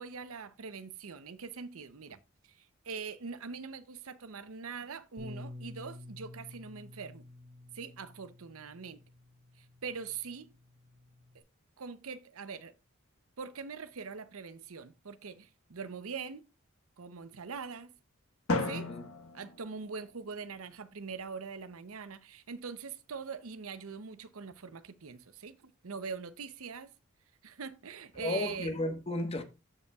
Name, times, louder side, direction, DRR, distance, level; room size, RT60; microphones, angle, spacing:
voice 1, 0.0-7.3 7.7-9.0 9.6-10.5 11.3-11.4 11.8-12.7 13.4-16.5 17.0-17.9 18.6-18.9 19.3-26.9 27.4-28.7, right 5 dB, 85° right, 0.7 m, -43 dB
Bass guitar, 5.2-11.4, left 2 dB, 55° right, 5.0 m, -50 dB
Drum, 18.5-20.5, left 2 dB, 80° left, 1.3 m, -35 dB
voice 2, 18.6-19.0 28.2-29.4, left 1 dB, 30° left, 1.1 m, -34 dB
13.5 x 5.4 x 2.3 m
head